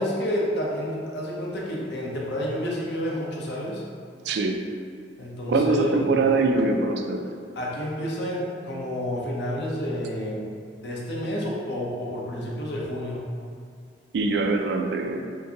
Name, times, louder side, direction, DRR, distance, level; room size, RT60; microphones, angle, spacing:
voice 1, 0.0-3.8 5.2-6.0 7.6-10.4 10.8-13.2, equal, 65° left, -3 dB, 0.7 m, -29 dB
voice 2, 4.2-4.7 5.5-7.3 14.1-15.2, right 3 dB, 65° right, 4 dB, 0.3 m, -23 dB
4.5 x 2.6 x 2.8 m, 2.2 s
head